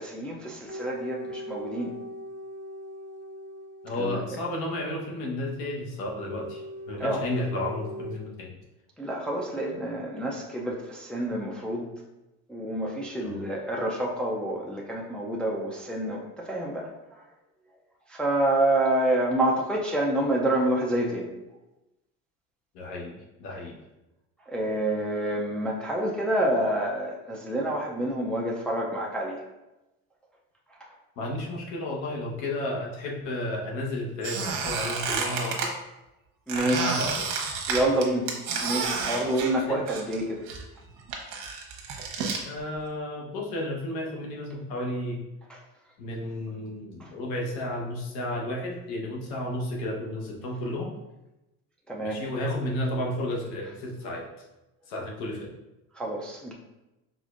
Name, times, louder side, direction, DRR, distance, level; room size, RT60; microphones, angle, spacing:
voice 1, 0.0-1.9 4.0-4.2 7.0-7.2 9.0-11.9 12.5-16.9 18.1-21.3 24.5-29.4 36.5-36.9 37.7-38.3 38.6-40.4 45.5-45.6 47.0-47.1 51.9-52.2 56.0-56.5, right 1 dB, 5° left, -3 dB, 0.4 m, -28 dB
sound 1, 0.6-4.6 6.0-8.1, equal, 25° left, 1.2 m, -40 dB
voice 2, 3.8-8.5 13.2-13.4 22.7-23.7 31.2-35.7 36.5-37.3 39.7-39.8 42.4-45.2 46.0-51.0 52.0-54.3 54.9-55.5, left 1 dB, 75° left, -1 dB, 1.2 m, -32 dB
Squeak, 34.2-35.7 36.5-40.2 40.5-42.4, right 5 dB, 65° right, 1.1 m, -30 dB
5.0 x 3.6 x 2.5 m, 0.98 s
cardioid pair, 140°, 30 cm